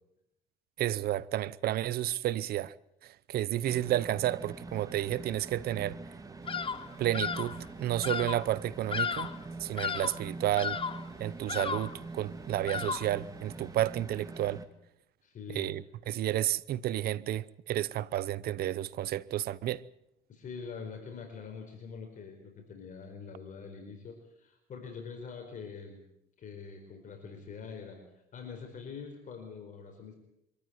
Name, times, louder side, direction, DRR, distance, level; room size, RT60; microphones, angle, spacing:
voice 1, 0.8-2.7 3.0-6.0 7.0-9.3 9.6-10.8 11.2-14.6 15.5-19.8, right 13 dB, 65° right, 0.8 m, -31 dB
sound 1, 3.7-14.7, right 3 dB, 20° right, 2.3 m, -44 dB
Bird vocalization bird call bird song, 6.5-6.9 7.1-7.6 8.0-8.5 8.9-9.4 9.8-10.2 10.6-11.1 11.5-12.0 12.7-13.2, left 6 dB, 30° left, 1.1 m, -34 dB
voice 2, 15.2-15.7 20.3-26.0 26.4-28.0 28.3-30.2, left 5 dB, 50° left, 4.7 m, -44 dB
24.0 x 14.0 x 9.5 m
cardioid pair, 110°, 17 cm